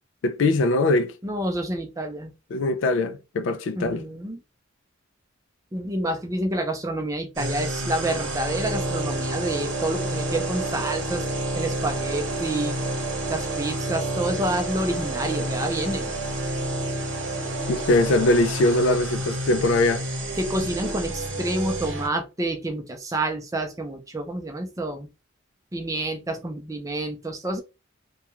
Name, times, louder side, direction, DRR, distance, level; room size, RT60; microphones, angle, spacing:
voice 1, 0.2-1.1 2.5-4.0 17.7-20.0, left 2 dB, 65° left, 0.4 m, -21 dB
voice 2, 1.2-2.3 3.7-4.4 5.7-11.2 11.5-12.8 13.3-16.1 20.4-25.1 25.7-27.6, right 1 dB, 15° right, 0.5 m, -28 dB
sound 1, 7.4-22.1, right 2 dB, 70° right, 0.9 m, -29 dB
2.3 x 2.3 x 2.9 m
head